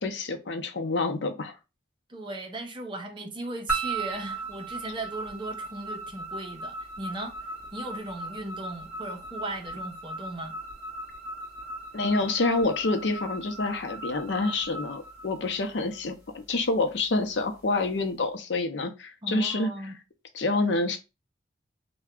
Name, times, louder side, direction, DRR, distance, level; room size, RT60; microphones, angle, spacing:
voice 1, 0.0-1.5 11.9-19.7 20.3-21.0, left 3 dB, 75° left, 0.6 m, -27 dB
voice 2, 2.1-7.3 7.7-10.5 19.2-20.0, right 1 dB, 25° right, 0.6 m, -37 dB
sound 1, 3.7-16.0, right 2 dB, 10° right, 2.0 m, -37 dB
3.3 x 2.2 x 3.6 m
head